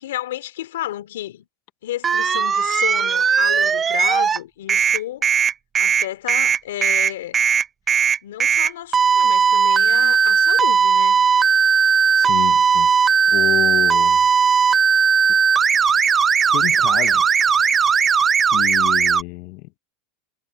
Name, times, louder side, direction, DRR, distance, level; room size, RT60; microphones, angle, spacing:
voice 1, 0.0-1.5 1.8-5.3 5.8-7.4 8.2-11.2, left 13 dB, 80° left, 3.0 m, -31 dB
sound 1, 2.0-4.4 4.7-19.2, right 6 dB, 25° right, 0.6 m, -17 dB
voice 2, 12.1-12.9 13.3-14.2 16.5-17.4 18.5-19.7, left 22 dB, 55° left, 0.8 m, -29 dB
supercardioid pair, 120°, 0 cm